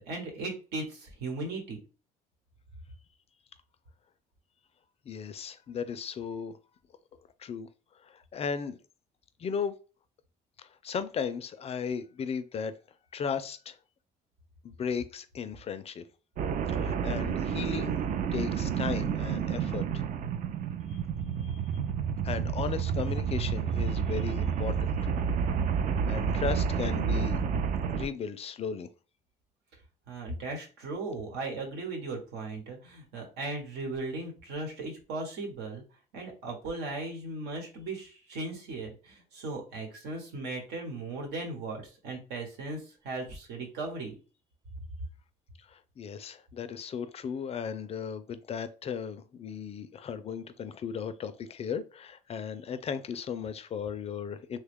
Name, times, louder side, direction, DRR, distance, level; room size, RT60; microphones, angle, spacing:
voice 1, 0.0-1.8 30.1-35.8 36.1-44.1, right 2 dB, 85° right, 1.3 m, -37 dB
voice 2, 5.1-6.6 7.4-7.7 8.0-8.8 9.4-9.8 10.6-12.7 13.1-13.8 14.6-16.0 16.7-18.0 18.3-20.0 20.9-21.0 21.4-21.6 22.2-25.1 26.1-27.4 27.9-28.9 45.6-54.6, left 6 dB, 35° left, 0.4 m, -36 dB
sound 1, 16.4-28.1, right 7 dB, 50° right, 0.4 m, -30 dB
3.2 x 2.2 x 3.5 m
cardioid pair, 110°, 17 cm